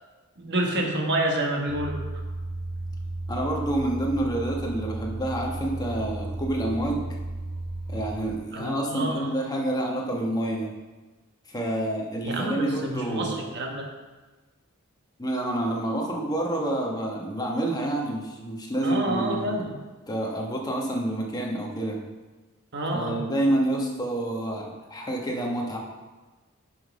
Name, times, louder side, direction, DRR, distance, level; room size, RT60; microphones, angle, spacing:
voice 1, 0.4-2.0 8.5-9.3 12.2-13.9 18.8-19.7 22.7-23.2, right 1 dB, 50° right, 1 dB, 1.3 m, -28 dB
sound 1, 1.7-8.4, right 2 dB, 65° right, 1.0 m, -34 dB
voice 2, 3.3-7.1 7.9-10.7 11.5-13.5 15.2-19.6 20.1-22.0 22.9-24.6 24.9-25.8, right 1 dB, 20° left, -1 dB, 1.3 m, -28 dB
6.8 x 5.7 x 5.3 m, 1.3 s
head